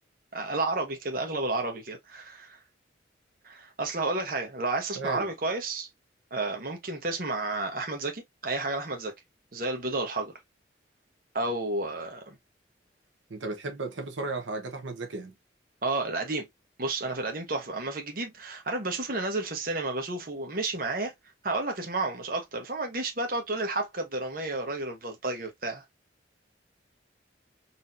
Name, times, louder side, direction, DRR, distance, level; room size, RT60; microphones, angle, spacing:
voice 1, 0.3-2.6 3.4-5.9 6.3-9.1 9.5-10.3 11.3-12.4 15.8-16.5 16.8-21.1 21.4-25.8, right 2 dB, 50° right, 1.0 m, -31 dB
voice 2, 5.0-5.3 13.3-15.3, right 3 dB, 85° right, 0.9 m, -35 dB
4.1 x 2.8 x 2.5 m
head